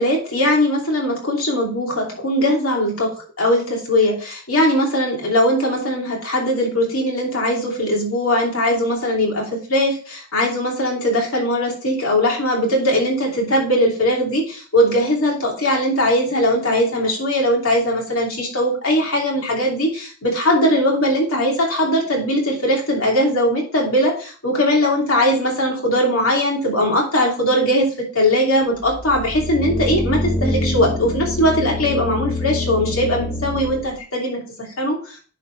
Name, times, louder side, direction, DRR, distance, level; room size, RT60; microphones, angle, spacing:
voice 1, 0.0-3.1 3.4-27.9 28.1-34.4 34.8-35.2, equal, 70° left, -1 dB, 2.7 m, -20 dB
sound 1, 28.8-33.9, left 1 dB, 20° left, 1.1 m, -25 dB
10.5 x 4.3 x 3.2 m, 0.39 s
head